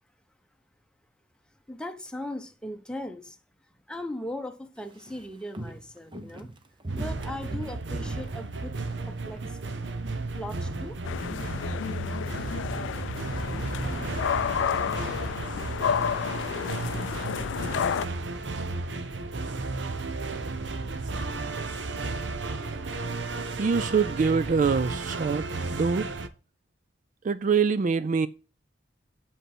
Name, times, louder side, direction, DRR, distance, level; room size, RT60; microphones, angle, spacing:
voice 1, 1.7-3.4 3.9-6.5 6.9-8.7 9.1-9.6 10.4-11.0, left 1 dB, 5° left, 1.0 m, -38 dB
Walk footsteps, 4.8-9.1 9.4-9.8 10.0-12.4 12.6-12.7, right 2 dB, 25° right, 0.8 m, -42 dB
sound 1, 6.9-26.3, right 3 dB, 75° right, 0.9 m, -33 dB
sound 2, 11.0-18.1, left 8 dB, 80° left, 0.3 m, -30 dB
voice 2, 23.6-26.1 27.2-28.3, right 5 dB, 45° right, 0.3 m, -24 dB
7.3 x 5.5 x 6.1 m
head